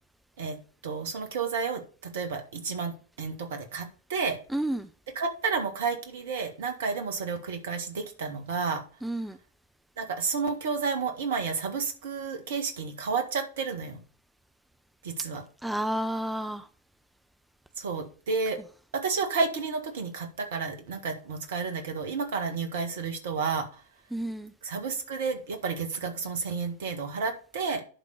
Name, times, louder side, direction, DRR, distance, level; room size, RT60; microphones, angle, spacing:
voice 1, 0.8-4.4 5.2-8.8 10.0-14.0 15.0-15.4 17.8-18.6 18.9-23.7 24.6-27.8, right 5 dB, 60° right, 5 dB, 1.8 m, -31 dB
voice 2, 4.5-4.9 9.0-9.4 15.6-16.7 24.1-24.5, right 1 dB, 5° right, 9 dB, 0.6 m, -30 dB
11.0 x 3.8 x 6.5 m, 0.40 s
figure-of-eight pair, 90°, 0 cm